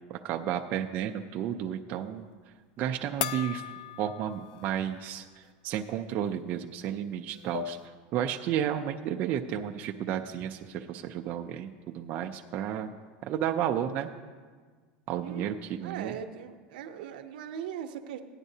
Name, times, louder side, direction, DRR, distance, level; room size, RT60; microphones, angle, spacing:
voice 1, 0.1-2.3 2.8-3.7 4.0-7.8 8.1-12.9 13.2-14.1 15.1-16.1, right 10 dB, 35° right, 4 dB, 0.4 m, -32 dB
sound 1, 3.2-4.8 5.2-5.3 6.8-6.9 7.3-7.9, left 11 dB, 65° left, 0.4 m, -37 dB
voice 2, 15.8-18.2, right 8 dB, 75° right, 7 dB, 0.7 m, -39 dB
14.5 x 9.8 x 2.7 m, 1.5 s
supercardioid pair, 155°, 5 cm